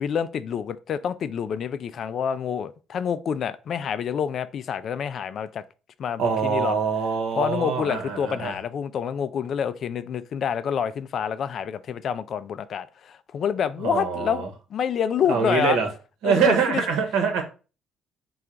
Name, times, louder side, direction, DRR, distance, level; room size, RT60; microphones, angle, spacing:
voice 1, 0.0-5.6 6.0-6.8 7.3-14.5 14.7-15.8 16.2-16.8, left 8 dB, 55° left, 0.3 m, -27 dB
voice 2, 6.2-8.5 13.8-14.5 15.3-15.9 16.2-17.4, right 6 dB, 85° right, 1.0 m, -24 dB
3.8 x 2.3 x 4.4 m
cardioid pair, 105°, 0 cm